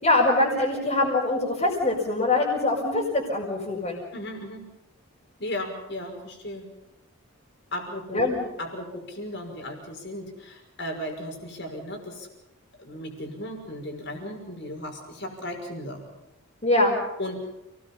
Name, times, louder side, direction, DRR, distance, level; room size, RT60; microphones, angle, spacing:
voice 1, 0.0-4.0 8.1-8.4 16.6-16.9, left 2 dB, 30° left, -6 dB, 5.4 m, -23 dB
voice 2, 4.1-4.6 5.4-6.7 7.7-8.3 8.6-12.3 12.8-16.0 17.2-17.4, left 1 dB, 50° left, 3 dB, 5.8 m, -35 dB
29.5 x 20.0 x 5.6 m, 0.93 s
head